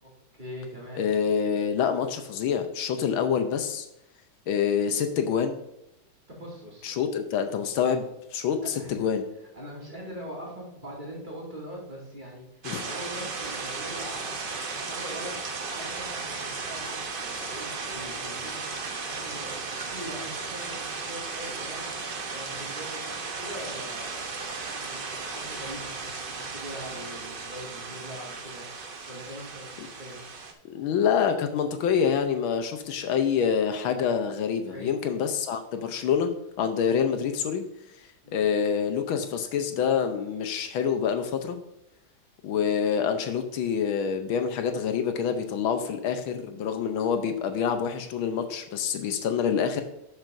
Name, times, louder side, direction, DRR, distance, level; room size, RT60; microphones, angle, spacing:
voice 1, 0.0-1.0 6.3-6.9 8.8-8.9 9.5-28.7 29.1-30.2 34.6-35.1 38.2-38.4, equal, 25° right, -4 dB, 2.4 m, -42 dB
voice 2, 1.0-3.9 4.5-5.6 6.8-8.1 8.3-9.2 12.6-12.8 30.6-36.3 36.6-37.6 38.3-41.6 42.4-49.8, left 7 dB, 80° left, 7 dB, 1.6 m, -26 dB
sound 1, 12.6-30.5, right 4 dB, 70° right, 0.5 m, -35 dB
11.5 x 6.8 x 2.6 m, 0.83 s
omnidirectional pair, 2.2 m